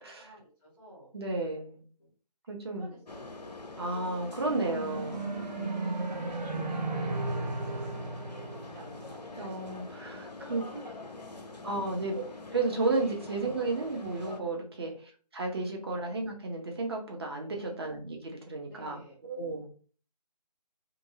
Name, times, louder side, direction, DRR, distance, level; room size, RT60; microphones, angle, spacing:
voice 1, 0.0-1.1 2.0-2.1 2.4-3.2 4.3-8.2 8.5-9.5 10.5-11.6 11.8-12.0 13.1-13.3 14.8-15.0 15.8-16.0 17.5-17.8 18.6-19.2, right 1 dB, 5° left, -9 dB, 0.5 m, -53 dB
voice 2, 1.1-1.8 2.5-2.9 3.8-5.3 9.4-10.6 11.6-12.2 12.5-14.9 15.3-19.7, right 3 dB, 40° right, 1 dB, 0.7 m, -33 dB
sound 1, 3.0-14.4, left 3 dB, 85° left, 0.6 m, -44 dB
sound 2, 4.1-9.6, right 2 dB, 85° right, 0.6 m, -35 dB
2.7 x 2.6 x 2.6 m, 0.41 s
figure-of-eight pair, 155°, 21 cm